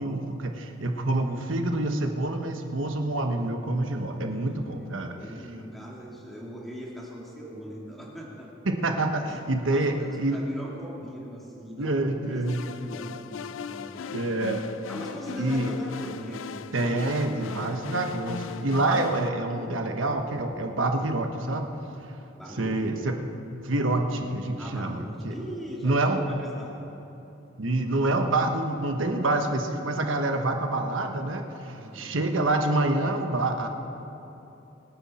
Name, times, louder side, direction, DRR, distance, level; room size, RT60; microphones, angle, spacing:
voice 1, 0.0-5.1 8.7-10.4 11.8-12.6 14.1-14.6 15.4-15.7 16.7-21.7 22.6-23.1 23.6-25.4 25.8-26.2 27.6-33.7, right 2 dB, 90° right, 4 dB, 1.3 m, -27 dB
voice 2, 4.3-8.5 9.3-14.4 14.9-16.9 17.3-17.7 22.4-22.8 24.6-26.8 31.7-32.2, equal, ahead, -4 dB, 2.5 m, -41 dB
sound 1, 12.4-19.3, left 6 dB, 80° left, 0.4 m, -38 dB
25.0 x 9.9 x 4.3 m, 3.0 s
head